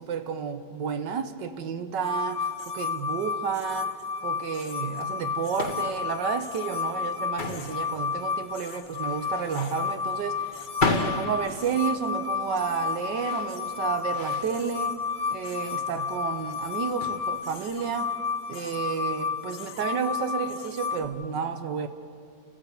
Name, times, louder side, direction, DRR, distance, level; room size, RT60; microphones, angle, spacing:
voice 1, 0.0-15.0 15.3-18.1 18.5-21.9, right 6 dB, 70° right, 1.6 m, -31 dB
sound 1, 2.0-21.0, left 6 dB, 70° left, 1.8 m, -32 dB
Loading Ute Flat Bed Truck in a large shed, 4.9-17.9, left 3 dB, 30° left, 1.1 m, -35 dB
30.0 x 15.0 x 7.0 m
omnidirectional pair, 2.0 m